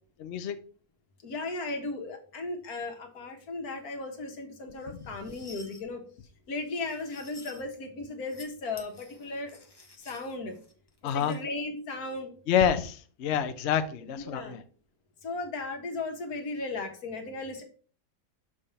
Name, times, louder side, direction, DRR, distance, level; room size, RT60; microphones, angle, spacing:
voice 1, 0.2-0.5 11.0-11.3 12.5-14.6, left 8 dB, 75° left, 0.6 m, -27 dB
voice 2, 1.2-6.0 6.5-9.6 10.0-10.6 11.1-12.3 14.0-14.5 15.2-17.6, left 3 dB, 55° left, 1.7 m, -36 dB
sound 1, 4.7-5.8 6.6-7.6 8.1-8.5 8.8-11.4, left 3 dB, 25° left, 0.5 m, -52 dB
6.8 x 3.6 x 5.4 m
omnidirectional pair, 2.0 m